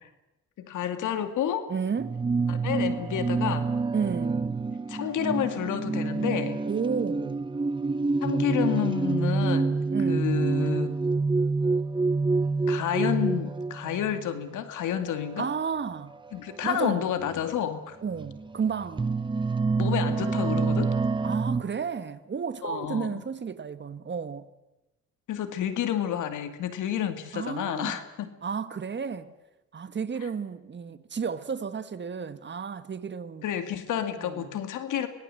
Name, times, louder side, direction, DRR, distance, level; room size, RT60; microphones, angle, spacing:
voice 1, 0.6-1.7 2.5-3.7 4.9-6.6 8.2-10.9 12.7-15.5 16.3-18.0 19.8-21.0 22.6-23.2 25.3-28.3 33.4-35.1, left 10 dB, 80° left, 2.3 m, -30 dB
voice 2, 1.7-2.2 3.9-4.6 6.6-7.5 9.9-10.4 15.4-16.2 16.6-17.0 18.0-19.2 21.2-24.5 27.3-28.0 28.4-29.3 29.7-33.4 34.2-34.5, right 6 dB, 35° right, 1.5 m, -32 dB
sound 1, 2.0-14.3 15.1-15.4 16.5-16.6 17.2-17.4 18.1-21.6, right 4 dB, 15° right, 0.7 m, -27 dB
25.5 x 18.5 x 7.7 m
cardioid pair, 90°, 30 cm